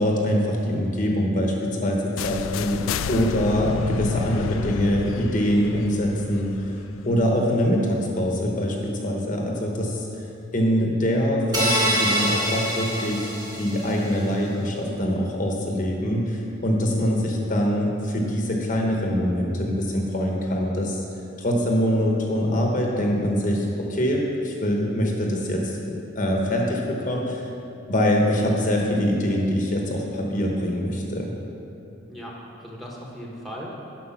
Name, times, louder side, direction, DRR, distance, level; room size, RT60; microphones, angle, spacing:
voice 1, 0.0-6.8 7.0-10.2 10.5-21.0 21.4-27.5 27.9-31.3, equal, 35° left, 0 dB, 0.9 m, -24 dB
sound 1, 2.2-8.0, left 6 dB, 75° left, 0.3 m, -31 dB
sound 2, 11.5-14.0, equal, 20° right, 1.2 m, -25 dB
voice 2, 32.1-33.8, equal, ahead, -3 dB, 1.1 m, -38 dB
9.9 x 6.4 x 5.7 m, 2.8 s
head